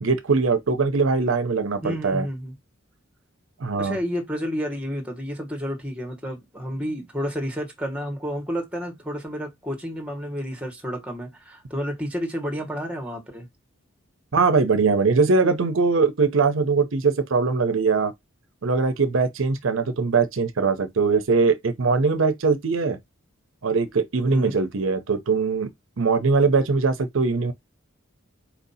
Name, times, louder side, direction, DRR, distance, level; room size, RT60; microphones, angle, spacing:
voice 1, 0.0-2.2 3.6-4.0 14.3-18.1 18.6-23.0 23.6-25.7 26.0-27.5, right 4 dB, 75° right, 0.6 m, -21 dB
voice 2, 1.8-2.5 3.8-13.5 24.3-24.6, equal, 5° right, 1.2 m, -30 dB
4.4 x 2.7 x 4.0 m
head